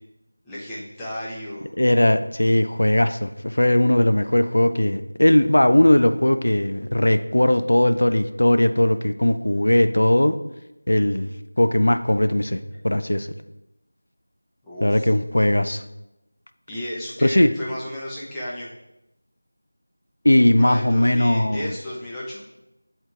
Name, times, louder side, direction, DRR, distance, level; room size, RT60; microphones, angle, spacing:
voice 1, 0.4-1.7 14.6-15.1 16.7-18.7 20.6-22.5, left 1 dB, 5° left, 0.8 m, -33 dB
voice 2, 1.8-10.3 10.9-11.3 11.6-13.3 14.8-15.8 17.2-17.5 20.2-21.7, left 1 dB, 65° left, 0.4 m, -19 dB
7.5 x 4.4 x 3.6 m
figure-of-eight pair, 170°, 0 cm